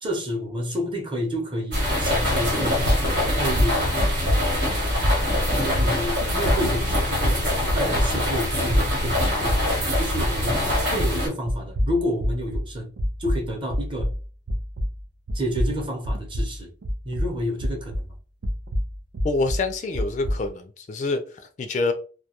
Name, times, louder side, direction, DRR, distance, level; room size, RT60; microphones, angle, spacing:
voice 1, 0.0-2.8 3.4-3.9 5.6-12.9 13.2-14.1 15.3-16.7 17.0-18.1, equal, 30° right, 0.7 m, -30 dB
sound 1, 1.7-11.3, left 1 dB, 90° right, 1.3 m, -24 dB
sound 2, 2.9-10.5 10.7-15.0 15.3-18.1 18.4-20.5, equal, 70° right, 0.4 m, -26 dB
voice 2, 19.2-21.9, left 3 dB, 45° left, 0.3 m, -26 dB
2.2 x 2.2 x 2.8 m
head